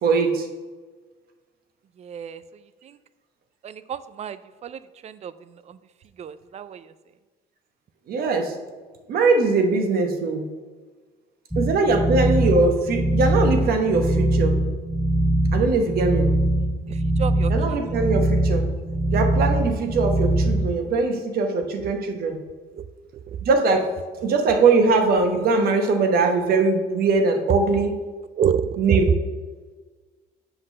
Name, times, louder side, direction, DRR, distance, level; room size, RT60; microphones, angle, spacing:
voice 1, 0.0-0.5 8.1-8.6 9.1-10.4 11.6-14.6 15.5-16.3 17.5-18.7 19.1-22.4 23.4-23.9 24.2-27.9 28.8-29.1, right 3 dB, 65° right, 4 dB, 1.2 m, -21 dB
voice 2, 2.0-2.4 2.8-3.0 3.6-5.3 5.7-5.8 6.2-6.9 16.9-17.5 21.8-21.9 22.8-22.9 23.3-23.4 28.4-28.8, right 8 dB, 40° right, 14 dB, 0.4 m, -29 dB
sound 1, 11.5-20.7, right 1 dB, ahead, 0.9 m, -22 dB
7.8 x 3.9 x 6.4 m, 1.4 s
cardioid pair, 110°, 17 cm